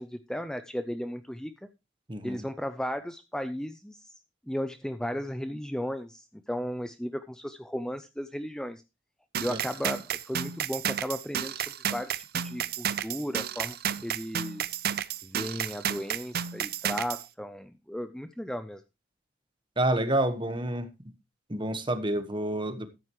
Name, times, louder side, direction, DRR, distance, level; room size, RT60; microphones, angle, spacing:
voice 1, 0.0-1.7 2.2-4.2 4.5-8.8 9.4-11.6 11.9-13.8 14.0-14.8 15.2-18.8, equal, 5° left, 0.5 m, -35 dB
voice 2, 2.1-2.4 9.5-9.6 19.8-20.9 21.5-22.9, right 1 dB, 25° right, 1.2 m, -28 dB
sound 1, 9.3-17.2, right 9 dB, 50° right, 0.6 m, -32 dB
14.0 x 9.4 x 3.1 m
head